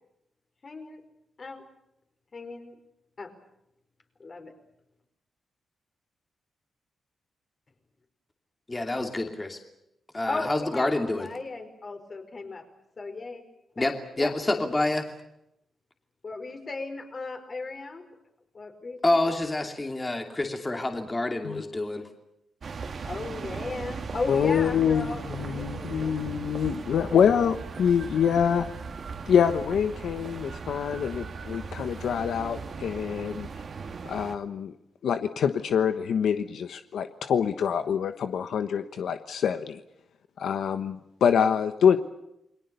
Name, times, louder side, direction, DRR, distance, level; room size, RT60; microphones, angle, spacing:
voice 1, 0.6-1.0 1.4-1.6 2.3-2.8 3.2-3.3 4.2-4.5 10.3-10.9 11.2-12.6 13.0-13.4 13.8-13.9 14.2-14.3 16.2-18.0 18.5-19.2 23.0-26.1, left 3 dB, 35° left, 6 dB, 4.9 m, -36 dB
voice 2, 8.7-9.6 10.1-11.3 13.8-15.1 19.0-22.1, left 2 dB, 20° left, 4 dB, 2.7 m, -27 dB
sound 1, 22.6-34.4, right 5 dB, 50° right, 2.2 m, -38 dB
voice 3, 24.3-28.7 29.3-33.5 34.0-34.7 35.0-39.8 40.4-42.0, left 7 dB, 80° left, 9 dB, 1.2 m, -25 dB
29.5 x 22.5 x 6.9 m, 0.83 s
wide cardioid pair, 135°, 0 cm